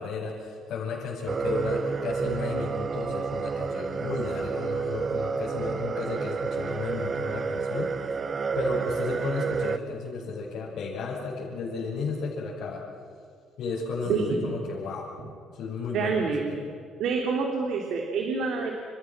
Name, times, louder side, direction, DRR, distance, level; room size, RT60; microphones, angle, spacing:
voice 1, 0.0-8.1 8.5-12.8 13.6-15.1 15.5-16.6, left 4 dB, 70° left, -6 dB, 6.2 m, -33 dB
sound 1, 1.3-9.8, right 5 dB, 30° right, 0.7 m, -30 dB
voice 2, 14.0-14.5 15.9-16.6 17.0-18.7, right 4 dB, 75° right, 1 dB, 3.3 m, -27 dB
29.5 x 29.5 x 6.2 m, 2.3 s
cardioid pair, 140°, 0 cm